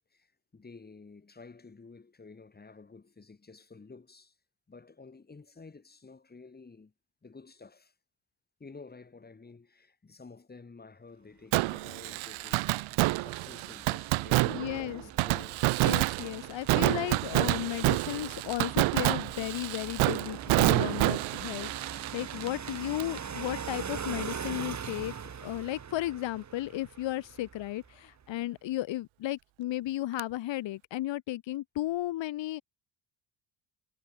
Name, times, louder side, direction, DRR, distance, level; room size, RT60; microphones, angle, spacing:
voice 1, 0.0-4.3 4.7-6.9 7.2-7.9 8.6-15.7 21.0-21.2, left 4 dB, 20° left, 5.2 m, -51 dB
Fireworks, 11.5-23.2 23.5-23.6 30.2-30.3, right 21 dB, 90° right, 0.9 m, -28 dB
sound 1, 11.8-28.0, right 7 dB, 35° right, 6.3 m, -43 dB
voice 2, 14.4-15.0 15.8-25.1 25.4-32.6, left 15 dB, 70° left, 2.1 m, -34 dB
cardioid pair, 125°, 46 cm